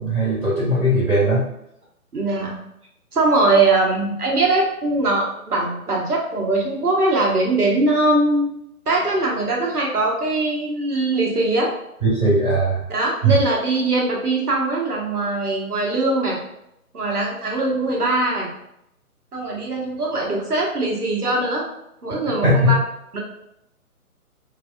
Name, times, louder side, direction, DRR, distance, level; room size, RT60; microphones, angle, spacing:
voice 1, 0.0-1.5 12.0-12.8 13.2-13.4 22.4-22.8, right 1 dB, 5° right, -19 dB, 0.8 m, -18 dB
voice 2, 2.1-2.6 3.1-8.5 8.9-11.7 12.9-16.4 16.9-18.5 19.3-21.7 22.0-22.8 23.1-23.2, right 2 dB, 80° right, -2 dB, 1.0 m, -21 dB
3.3 x 2.4 x 2.4 m, 0.80 s
figure-of-eight pair, 140°, 45 cm